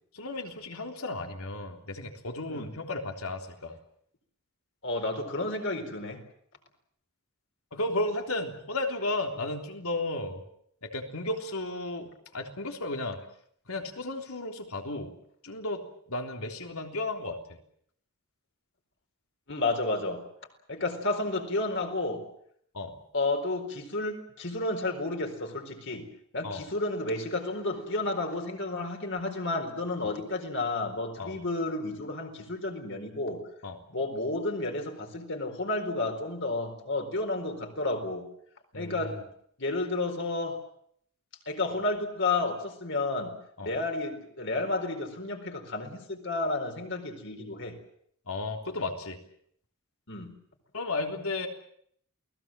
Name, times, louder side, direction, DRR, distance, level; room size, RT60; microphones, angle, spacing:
voice 1, 0.1-3.8 7.7-10.4 10.8-13.2 13.7-15.1 15.4-17.4 22.7-23.0 26.4-26.7 31.2-31.4 33.6-33.8 38.7-39.1 43.6-43.7 48.3-49.2 50.7-51.5, left 2 dB, 70° left, 4 dB, 3.5 m, -34 dB
voice 2, 4.8-6.2 19.5-20.2 20.7-22.2 23.1-26.1 26.3-33.4 33.9-38.3 38.7-39.2 39.6-40.6 41.5-43.3 43.6-47.8 50.1-50.3, left 2 dB, 55° left, 5 dB, 4.3 m, -31 dB
28.5 x 19.0 x 7.6 m, 0.67 s
head